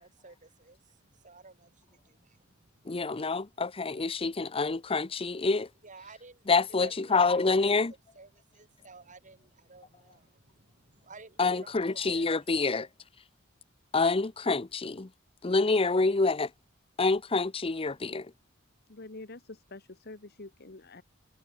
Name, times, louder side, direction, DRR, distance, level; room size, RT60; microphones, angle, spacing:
voice 1, 0.0-2.4 2.9-3.0 5.8-6.4 6.7-7.7 8.2-12.4, right 3 dB, 40° right, 3.7 m, -53 dB
voice 2, 2.9-5.7 6.5-7.9 11.4-12.9 13.9-15.1 15.4-16.5 17.0-18.3, left 3 dB, 30° left, 0.7 m, -27 dB
voice 3, 18.9-21.0, left 2 dB, 55° left, 1.5 m, -46 dB
head